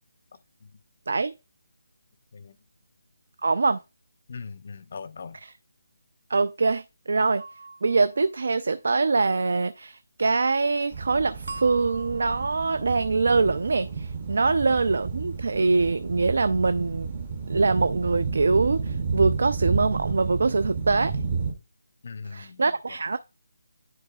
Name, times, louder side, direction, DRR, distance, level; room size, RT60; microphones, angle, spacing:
voice 1, 3.4-3.8 6.3-7.4 7.8-17.1 17.5-21.1 22.3-23.2, right 3 dB, 55° right, 0.3 m, -24 dB
voice 2, 4.3-5.4 14.5-14.6 22.0-23.0, left 5 dB, 35° left, 0.4 m, -40 dB
sound 1, 7.4-8.5 11.5-12.9, right 3 dB, 85° right, 1.0 m, -41 dB
sound 2, 10.9-21.5, right 5 dB, 25° right, 0.7 m, -31 dB
9.8 x 4.1 x 2.3 m
hypercardioid pair, 180°, 0 cm